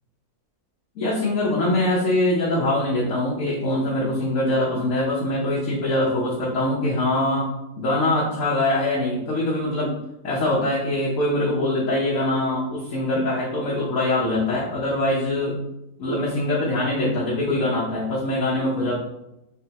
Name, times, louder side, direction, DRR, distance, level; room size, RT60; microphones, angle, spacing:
voice 1, 1.0-7.5 7.8-9.9 10.2-15.6 16.0-19.0, left 1 dB, 65° left, -6 dB, 1.1 m, -23 dB
3.7 x 3.3 x 2.8 m, 0.89 s
omnidirectional pair, 1.7 m